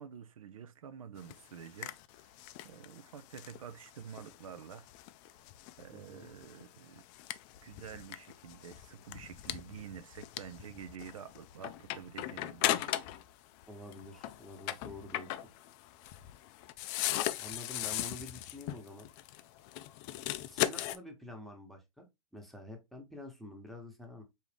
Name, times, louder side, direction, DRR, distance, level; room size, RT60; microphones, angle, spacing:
voice 1, 0.0-2.3 2.6-4.9 5.8-7.0 7.6-13.0 17.8-18.0, right 8 dB, 70° right, 0.5 m, -49 dB
sound 1, 1.2-13.3 13.6-21.0, left 14 dB, 35° left, 0.4 m, -39 dB
voice 2, 5.9-6.3 13.7-15.4 17.4-19.1 20.4-22.1 22.3-24.2, left 1 dB, ahead, 1.1 m, -48 dB
4.6 x 2.8 x 3.3 m
hypercardioid pair, 110°, 18 cm